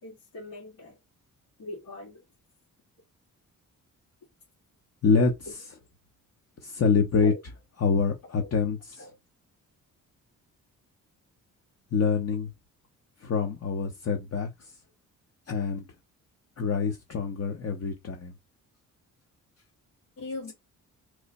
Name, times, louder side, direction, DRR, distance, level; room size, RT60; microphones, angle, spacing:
voice 1, 0.0-1.0 1.6-2.2 7.2-7.4 8.4-8.6 9.0-9.2 20.2-20.5, left 2 dB, 80° left, 1.8 m, -40 dB
voice 2, 5.0-5.6 6.6-7.3 7.8-9.1 11.9-12.5 13.2-14.5 15.5-15.8 16.6-18.3, left 5 dB, 45° left, 0.8 m, -26 dB
3.1 x 2.2 x 4.0 m
cardioid pair, 95°, 34 cm